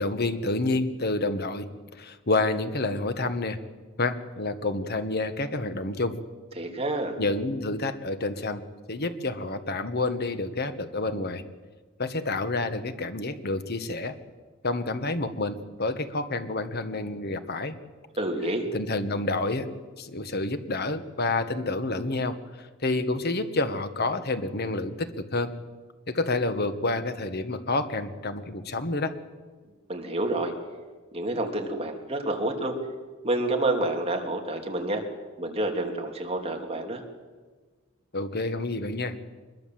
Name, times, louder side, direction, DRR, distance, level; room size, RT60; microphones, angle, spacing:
voice 1, 0.0-3.6 4.0-6.2 7.2-8.6 8.9-11.4 12.0-14.2 14.6-17.8 18.7-19.7 20.0-25.5 26.1-29.1 38.1-39.2, left 2 dB, 50° left, 10 dB, 1.5 m, -29 dB
voice 2, 6.6-7.2 18.2-18.6 29.9-30.5 31.1-32.8 33.2-35.0 35.4-37.0, right 1 dB, 30° right, 3 dB, 3.0 m, -28 dB
24.0 x 21.5 x 7.7 m, 1.4 s
head